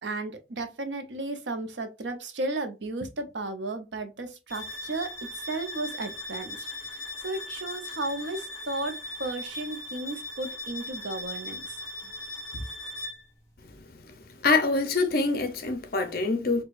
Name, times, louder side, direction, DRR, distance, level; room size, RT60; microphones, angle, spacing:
voice 1, 0.0-11.7 12.5-12.6, right 2 dB, 70° right, 0.7 m, -34 dB
sound 1, 4.5-13.3, left 1 dB, 15° left, 1.1 m, -39 dB
voice 2, 14.4-16.6, left 3 dB, 50° left, 0.7 m, -25 dB
4.6 x 2.3 x 2.4 m
head